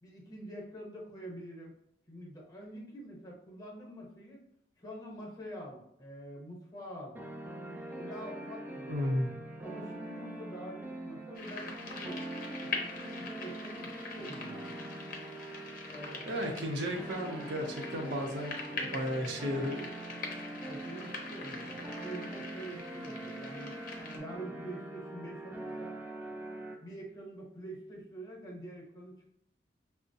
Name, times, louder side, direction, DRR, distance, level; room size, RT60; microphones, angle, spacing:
voice 1, 0.0-1.7 2.1-4.4 4.8-7.3 8.0-9.2 9.6-12.2 12.6-14.9 15.8-16.6 20.6-23.8 24.1-26.0 26.8-29.3, right 1 dB, 20° left, -3 dB, 0.9 m, -46 dB
sound 1, 7.1-26.7, right 1 dB, 10° right, 0.4 m, -43 dB
voice 2, 8.9-9.3 16.2-19.9, equal, 75° right, 1 dB, 0.7 m, -34 dB
sound 2, 11.3-24.2, left 3 dB, 55° left, 0.7 m, -43 dB
5.6 x 2.1 x 2.6 m, 0.78 s
head